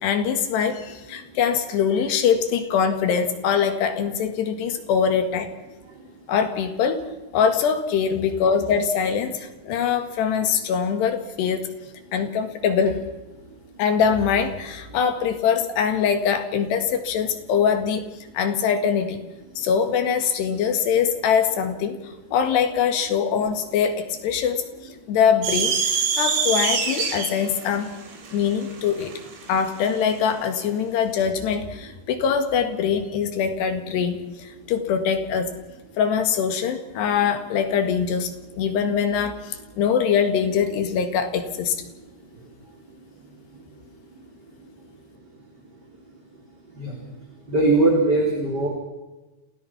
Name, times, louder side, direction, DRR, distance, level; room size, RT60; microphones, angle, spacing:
voice 1, 0.0-5.5 6.3-7.0 7.3-11.7 12.1-13.0 13.8-18.0 18.3-19.2 19.6-22.0 22.3-24.6 25.1-27.9 28.3-29.1 29.5-35.5 36.0-41.8, left 7 dB, 70° left, 7 dB, 3.8 m, -23 dB
sound 1, 25.4-29.9, right 5 dB, 80° right, 5.7 m, -25 dB
voice 2, 46.7-47.1 47.5-48.7, right 2 dB, 25° right, -1 dB, 3.5 m, -21 dB
28.0 x 17.0 x 5.9 m, 1.1 s
omnidirectional pair, 5.2 m